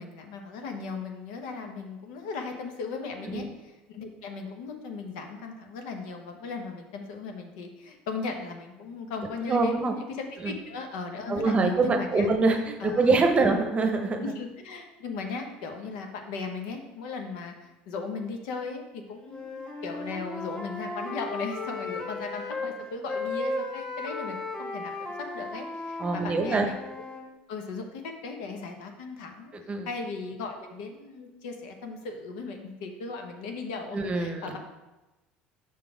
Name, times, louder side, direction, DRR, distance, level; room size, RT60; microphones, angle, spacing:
voice 1, 0.0-12.3 12.8-13.5 14.2-26.7 27.1-27.2 27.5-29.5 29.8-34.6, left 4 dB, 85° left, 4 dB, 0.9 m, -37 dB
voice 2, 9.5-9.9 10.4-10.5 11.3-14.2 26.0-26.7 29.7-29.9 33.9-34.6, right 3 dB, 30° right, 5 dB, 0.8 m, -24 dB
Wind instrument woodwind instrument, 19.2-22.7 23.1-27.3, left 2 dB, 20° left, 1.2 m, -35 dB
5.6 x 3.8 x 4.9 m, 1.0 s
supercardioid pair, 110°, 4 cm